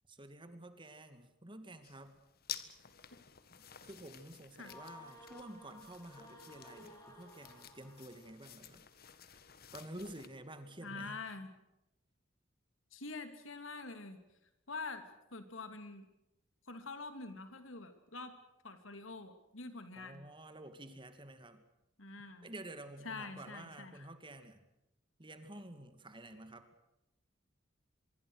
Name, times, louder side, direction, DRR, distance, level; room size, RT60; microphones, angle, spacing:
voice 1, 0.1-2.2 3.8-8.9 9.7-11.2 20.0-21.6 22.4-24.6 25.2-26.7, right 1 dB, 25° right, 9 dB, 2.4 m, -50 dB
sound 1, 1.8-10.3, left 10 dB, 50° left, 1.7 m, -52 dB
sound 2, 4.6-8.4, left 1 dB, 20° left, 5.8 m, -56 dB
voice 2, 10.8-11.5 12.9-14.2 14.7-16.0 16.6-20.2 22.0-22.5 23.0-24.1, left 3 dB, 85° left, 8 dB, 3.0 m, -46 dB
25.5 x 23.0 x 6.5 m, 0.90 s
head